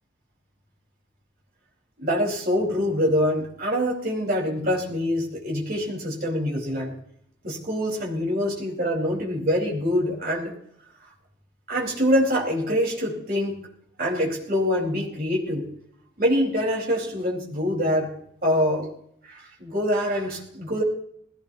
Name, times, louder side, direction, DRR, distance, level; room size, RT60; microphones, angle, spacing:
voice 1, 2.0-6.9 7.4-10.5 11.7-13.6 14.0-15.7 16.2-18.1 18.4-18.9 19.3-20.8, equal, 50° right, -3 dB, 4.5 m, -25 dB
20.0 x 17.0 x 2.9 m, 0.68 s
head